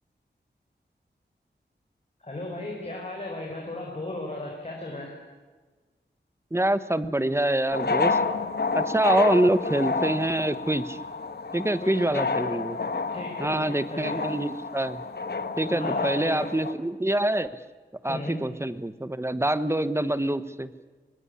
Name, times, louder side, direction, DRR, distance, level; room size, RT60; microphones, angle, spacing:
voice 1, 2.2-5.1 11.8-12.3 13.1-14.2 15.7-16.5 18.1-18.4, left 2 dB, 35° left, 0 dB, 5.1 m, -36 dB
voice 2, 6.5-8.2 8.7-11.0 11.5-12.8 13.4-15.0 15.6-17.6 18.0-20.7, right 1 dB, 15° right, 13 dB, 1.2 m, -25 dB
sound 1, 7.7-16.7, left 4 dB, 60° left, 1.6 m, -29 dB
24.5 x 20.0 x 10.0 m, 1.4 s
wide cardioid pair, 105°, 19 cm